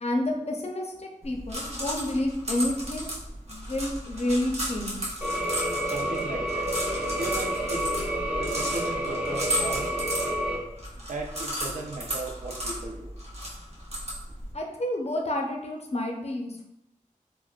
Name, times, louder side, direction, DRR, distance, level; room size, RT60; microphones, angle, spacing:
voice 1, 0.0-3.1 3.5-5.0 14.5-16.6, left 1 dB, 50° left, 1 dB, 0.5 m, -29 dB
sound 1, 1.2-14.5, equal, 50° right, 0.9 m, -34 dB
sound 2, 5.2-10.6, equal, 10° right, 0.6 m, -29 dB
voice 2, 5.8-6.7 7.1-8.0 8.4-9.9 11.0-13.1, right 2 dB, 65° right, 0 dB, 0.5 m, -36 dB
3.4 x 2.0 x 2.3 m, 0.83 s
wide cardioid pair, 60°, 14 cm